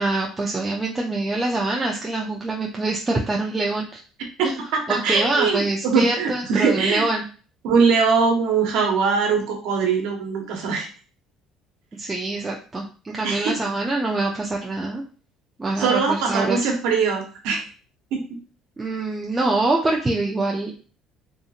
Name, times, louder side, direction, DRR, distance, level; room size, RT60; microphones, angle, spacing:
voice 1, 0.0-4.0 4.4-4.5 4.9-7.2 11.9-15.0 15.6-16.7 18.8-20.9, right 2 dB, 20° right, -1 dB, 0.5 m, -25 dB
voice 2, 4.4-7.1 7.6-10.9 13.2-13.5 15.8-17.6 18.1-18.3, right 5 dB, 80° right, 2 dB, 0.8 m, -21 dB
2.8 x 2.5 x 2.4 m, 0.37 s
supercardioid pair, 90°, 0 cm